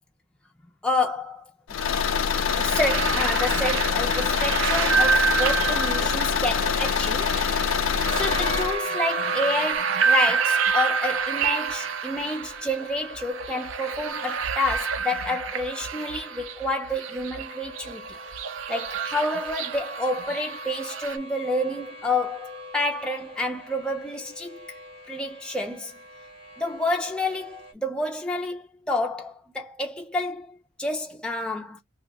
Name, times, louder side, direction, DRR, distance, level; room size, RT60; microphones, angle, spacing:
voice 1, 0.8-1.4 2.8-7.3 8.1-18.1 18.7-24.6 25.1-25.9 26.6-31.8, left 2 dB, 5° left, 0.4 m, -29 dB
Car / Engine, 1.7-8.8, left 7 dB, 80° left, 0.4 m, -25 dB
sound 1, 1.8-21.2, right 6 dB, 75° right, 0.4 m, -28 dB
sound 2, 8.0-27.7, right 1 dB, 25° right, 0.7 m, -38 dB
2.6 x 2.1 x 3.8 m
head